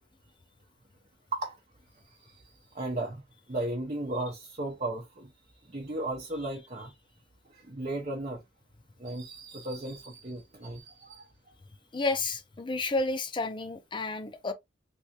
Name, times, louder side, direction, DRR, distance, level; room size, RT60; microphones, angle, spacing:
voice 1, 2.7-3.2 3.5-5.3 5.6-6.9 7.5-8.4 9.0-11.2, right 2 dB, 40° right, 0.7 m, -35 dB
voice 2, 11.9-14.5, left 3 dB, 25° left, 0.5 m, -31 dB
3.3 x 2.5 x 2.8 m
head